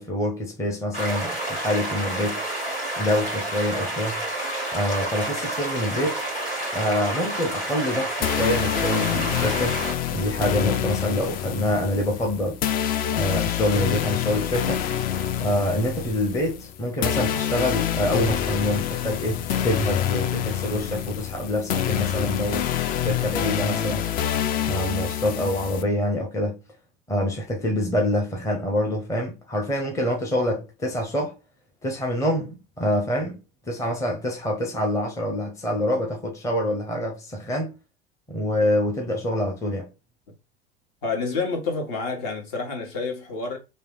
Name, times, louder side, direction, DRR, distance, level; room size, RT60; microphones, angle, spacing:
voice 1, 0.0-2.4 3.0-4.2 4.7-6.2 6.7-9.8 10.1-12.6 13.1-14.8 15.4-24.1 24.6-26.6 27.1-31.4 31.8-33.4 33.7-37.7 38.3-39.9, left 1 dB, 10° left, 0.8 m, -26 dB
sound 1, 0.9-9.9, right 1 dB, 85° left, 1.9 m, -29 dB
sound 2, 8.2-25.8, left 10 dB, 30° left, 0.4 m, -26 dB
voice 2, 41.0-43.6, left 4 dB, 50° left, 1.6 m, -28 dB
3.3 x 2.7 x 3.8 m
figure-of-eight pair, 80°, 32 cm